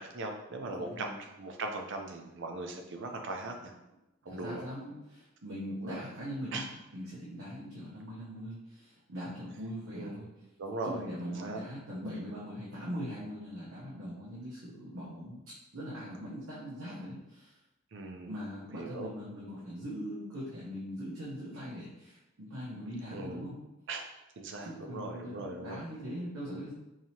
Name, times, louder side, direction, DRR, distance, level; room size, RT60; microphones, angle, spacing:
voice 1, 0.0-3.7 4.2-4.6 5.8-6.1 6.5-6.7 9.9-10.3 10.6-11.6 17.9-18.3 18.8-19.1 23.1-23.4 23.9-24.0 24.4-25.8, right 2 dB, 60° right, 3 dB, 0.5 m, -39 dB
voice 2, 4.3-6.6 6.9-10.3 10.8-15.4 15.7-17.5 18.3-23.5 24.6-26.7, equal, 90° right, -8 dB, 0.9 m, -41 dB
4.8 x 2.8 x 2.8 m, 0.96 s
head